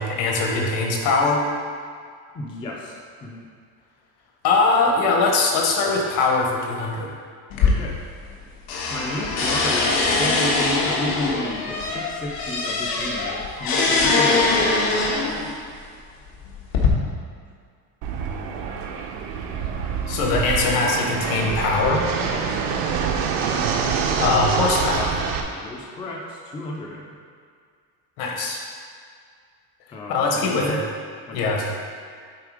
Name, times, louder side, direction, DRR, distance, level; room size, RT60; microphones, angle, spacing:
voice 1, 0.0-1.4 4.4-7.1 20.1-22.1 24.2-25.2 28.2-28.6 30.1-30.8 31.3-31.7, left 3 dB, 65° left, 0 dB, 1.4 m, -21 dB
voice 2, 2.3-3.5 7.5-8.0 8.9-15.5 22.3-22.6 25.4-27.2 29.9-30.8 31.3-31.6, left 1 dB, 15° left, -2 dB, 0.4 m, -32 dB
sound 1, 7.5-8.4 8.7-15.5 16.3-16.9, left 3 dB, 85° left, 1.5 m, -22 dB
Fixed-wing aircraft airplane, 18.0-25.4, right 6 dB, 85° right, 0.9 m, -26 dB
8.5 x 3.8 x 4.9 m, 2.1 s
cardioid pair, 175°, 40 cm